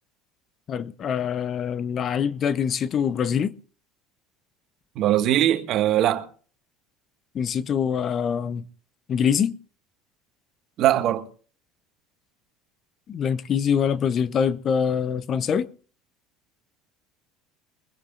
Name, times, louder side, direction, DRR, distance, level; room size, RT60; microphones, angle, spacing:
voice 1, 0.7-3.5 7.3-8.6 9.1-9.6 13.1-15.7, left 7 dB, 40° left, 0.9 m, -24 dB
voice 2, 5.0-6.3 10.8-11.3, right 12 dB, 55° right, 1.7 m, -21 dB
23.0 x 15.5 x 2.6 m
supercardioid pair, 105°, 0 cm